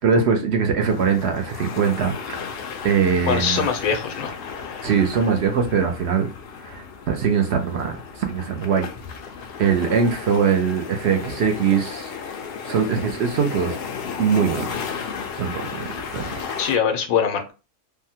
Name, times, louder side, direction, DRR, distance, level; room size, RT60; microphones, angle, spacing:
voice 1, 0.0-2.1 2.8-3.6 4.8-6.3 6.6-8.9 9.6-12.1 12.6-13.8 14.2-14.7 15.4-15.9 16.1-16.4, right 6 dB, 65° right, 0.7 m, -21 dB
sound 1, 0.9-16.8, left 6 dB, 65° left, 0.6 m, -34 dB
voice 2, 3.3-4.3 16.6-17.5, left 7 dB, 90° left, 1.1 m, -22 dB
3.4 x 2.1 x 2.7 m
omnidirectional pair, 1.4 m